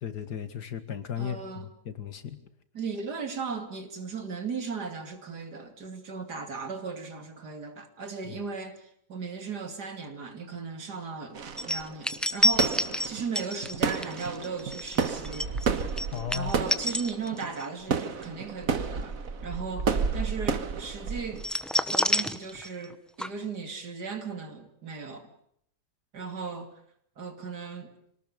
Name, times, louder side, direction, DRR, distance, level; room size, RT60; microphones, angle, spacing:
voice 1, 0.0-2.4 8.3-8.4 16.1-16.5, left 8 dB, 75° left, 2.4 m, -35 dB
voice 2, 1.2-1.7 2.7-15.6 16.3-19.2 19.4-21.5 21.9-25.3 26.1-26.7 27.2-27.9, right 5 dB, 70° right, 3.3 m, -37 dB
sound 1, 11.3-21.5, right 5 dB, 55° right, 1.8 m, -31 dB
sound 2, 11.6-17.6 18.0-18.2 21.4-22.9 23.2-23.3, equal, ahead, 0.6 m, -28 dB
26.5 x 19.0 x 6.8 m
omnidirectional pair, 1.8 m